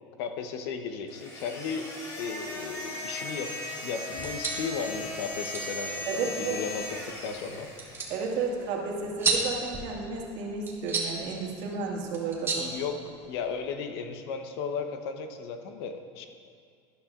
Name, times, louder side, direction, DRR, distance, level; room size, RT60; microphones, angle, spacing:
voice 1, 0.2-1.9 2.2-3.5 3.8-7.7 12.6-16.3, left 6 dB, 70° left, 6 dB, 0.9 m, -35 dB
sound 1, 1.1-8.5, left 1 dB, 25° left, 2.1 m, -38 dB
sound 2, 4.1-13.6, right 4 dB, 15° right, 1.5 m, -35 dB
voice 2, 6.1-6.6 8.1-12.8, right 4 dB, 60° right, -1 dB, 1.9 m, -32 dB
12.0 x 11.5 x 2.5 m, 2.3 s
supercardioid pair, 135°, 14 cm